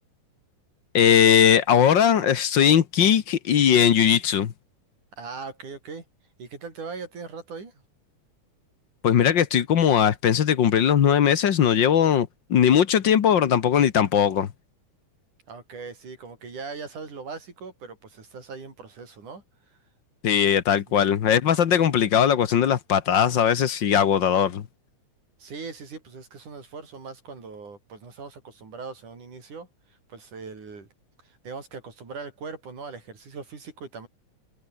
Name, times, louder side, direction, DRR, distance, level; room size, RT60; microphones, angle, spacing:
voice 1, 0.9-4.5 9.0-14.5 20.2-24.6, left 8 dB, 55° left, 1.4 m, -19 dB
voice 2, 5.2-6.0 6.4-7.7 15.5-19.4 19.7-19.8 25.4-29.7 30.1-30.9 31.2-34.1, right 4 dB, 85° right, 7.0 m, -40 dB
omnidirectional pair, 3.5 m